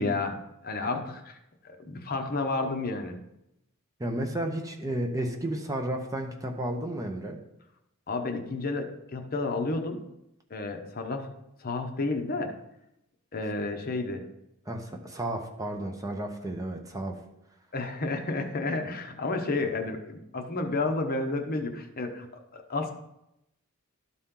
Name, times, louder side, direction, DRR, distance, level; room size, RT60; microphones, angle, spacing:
voice 1, 0.0-1.4 1.6-3.2 8.1-10.0 10.5-11.3 11.6-12.5 13.3-14.2 17.7-22.9, left 3 dB, 45° left, 4 dB, 0.9 m, -31 dB
voice 2, 4.0-7.4 14.7-17.2, right 1 dB, 15° right, 3 dB, 0.7 m, -32 dB
12.5 x 4.2 x 3.8 m, 0.85 s
head